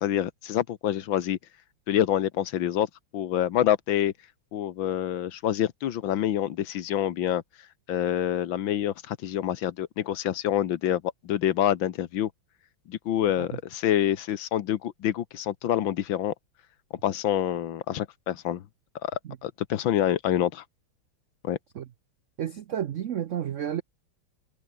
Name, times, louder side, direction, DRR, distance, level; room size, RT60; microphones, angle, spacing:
voice 1, 0.0-1.4 1.9-2.9 3.1-4.1 4.5-7.4 7.9-12.3 12.9-16.3 17.0-18.6 19.0-19.1 19.4-20.6 21.4-21.6, left 11 dB, 70° left, 1.8 m, -26 dB
voice 2, 22.4-23.8, right 10 dB, 90° right, 0.6 m, -31 dB
omnidirectional pair, 2.2 m